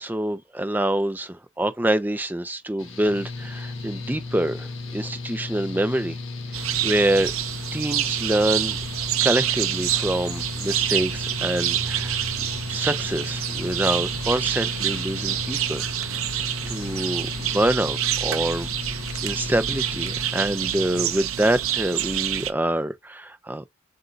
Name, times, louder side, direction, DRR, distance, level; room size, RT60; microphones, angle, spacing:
voice 1, 0.0-6.2 6.8-7.3 7.7-8.8 9.2-12.2 12.7-16.1 16.7-18.7 19.2-23.7, right 1 dB, 10° right, 0.6 m, -26 dB
Mechanical fan, 2.8-21.3, left 3 dB, 70° left, 1.4 m, -35 dB
sound 1, 6.5-22.5, right 11 dB, 90° right, 0.6 m, -27 dB
7.7 x 2.8 x 2.4 m
head